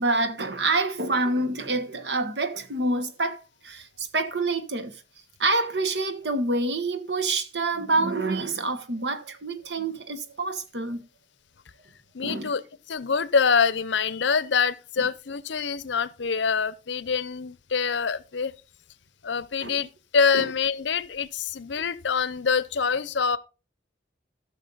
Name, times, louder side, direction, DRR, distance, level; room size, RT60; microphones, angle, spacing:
voice 1, 0.0-5.0 5.4-11.1 12.2-12.6 15.0-15.1 19.6-19.8 20.3-20.5, right 2 dB, 70° right, 1.3 m, -27 dB
voice 2, 12.1-12.6 12.9-18.5 19.2-23.4, left 5 dB, 85° left, 0.7 m, -25 dB
14.5 x 6.4 x 4.0 m
head